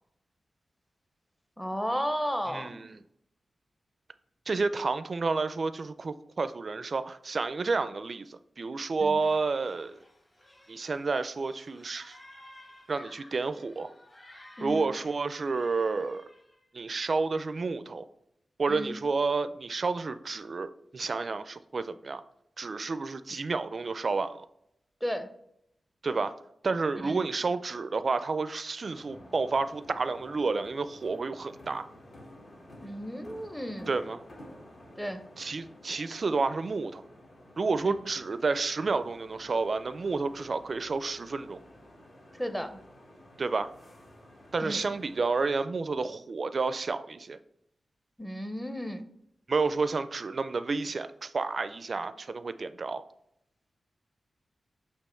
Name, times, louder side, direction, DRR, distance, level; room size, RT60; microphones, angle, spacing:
voice 1, 1.6-2.8 9.0-9.2 14.6-14.8 18.7-19.0 25.0-25.3 27.0-27.2 32.8-33.9 35.0-35.2 37.8-38.0 42.4-42.8 44.6-44.9 48.2-49.0, equal, 5° left, 7 dB, 0.6 m, -34 dB
voice 2, 2.5-3.0 4.5-9.9 10.7-12.2 12.9-13.9 14.6-16.3 16.7-18.0 18.6-22.2 22.6-24.5 26.0-26.4 26.6-31.9 33.9-34.2 35.4-37.0 37.6-41.6 43.4-43.7 44.5-47.4 49.5-53.0, right 4 dB, 50° right, 12 dB, 0.4 m, -30 dB
sound 1, 9.2-16.6, left 1 dB, 30° left, 1.4 m, -55 dB
sound 2, 28.8-45.6, left 1 dB, 55° left, 1.5 m, -52 dB
8.2 x 2.9 x 4.4 m, 0.75 s
wide cardioid pair, 120°, 0 cm